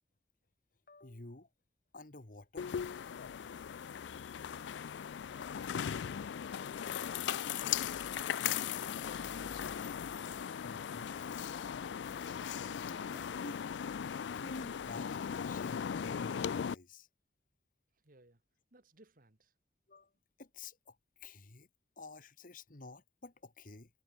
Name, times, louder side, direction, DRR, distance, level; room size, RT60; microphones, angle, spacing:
voice 1, 0.9-1.5 1.9-2.7 10.6-11.1 13.3-13.8 14.2-17.1 19.9-20.1 20.4-21.7 22.0-23.9, left 2 dB, 50° left, 1.6 m, -51 dB
sound 1, 2.6-16.7, left 8 dB, 80° left, 0.4 m, -38 dB
voice 2, 3.2-4.5 12.7-13.4 17.9-18.4 18.7-19.5, right 2 dB, 50° right, 1.9 m, -65 dB
sound 2, 5.2-13.3, equal, 5° right, 3.0 m, -63 dB
head